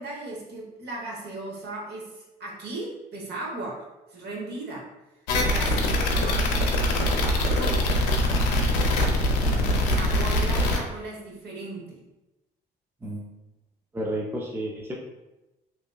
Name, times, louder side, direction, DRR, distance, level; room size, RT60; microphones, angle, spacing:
voice 1, 0.0-3.8 4.1-4.9 5.3-7.9 8.8-8.9 9.8-12.0, right 2 dB, 55° right, -2 dB, 0.9 m, -37 dB
sound 1, 5.3-10.8, left 1 dB, 80° left, 0.4 m, -23 dB
voice 2, 9.4-10.1 13.0-13.3 13.9-14.9, right 1 dB, 10° right, -2 dB, 0.4 m, -32 dB
2.7 x 2.3 x 2.3 m, 0.99 s
hypercardioid pair, 60°, 21 cm